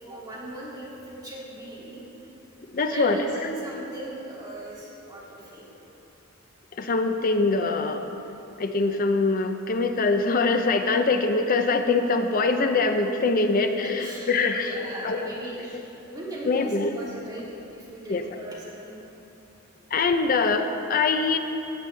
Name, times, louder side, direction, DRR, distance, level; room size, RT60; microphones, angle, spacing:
voice 1, 0.0-2.0 2.8-5.7 13.3-13.4 13.8-17.4 17.7-19.0, right 1 dB, 20° right, -8 dB, 2.8 m, -38 dB
voice 2, 2.7-3.2 6.8-8.0 8.6-15.3 16.4-17.0 18.1-18.2 19.9-21.4, left 3 dB, 45° left, 7 dB, 0.5 m, -23 dB
15.5 x 8.5 x 3.3 m, 2.9 s
head